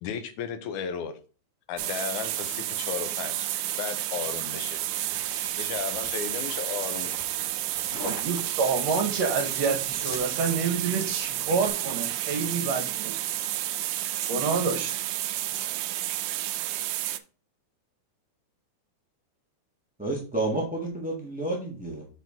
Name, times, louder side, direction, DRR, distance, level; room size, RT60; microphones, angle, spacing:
voice 1, 0.0-1.1 1.7-3.5 3.8-4.8 5.6-7.1, left 8 dB, 90° left, 2.3 m, -34 dB
sound 1, 1.8-17.2, right 14 dB, 90° right, 2.1 m, -31 dB
Putting Belt On, 4.2-11.7, left 3 dB, 70° left, 3.2 m, -45 dB
voice 2, 8.0-13.1 14.3-14.9, right 5 dB, 65° right, 2.3 m, -28 dB
voice 3, 20.0-22.1, right 2 dB, 10° right, 0.5 m, -30 dB
6.1 x 5.9 x 3.6 m
omnidirectional pair, 3.4 m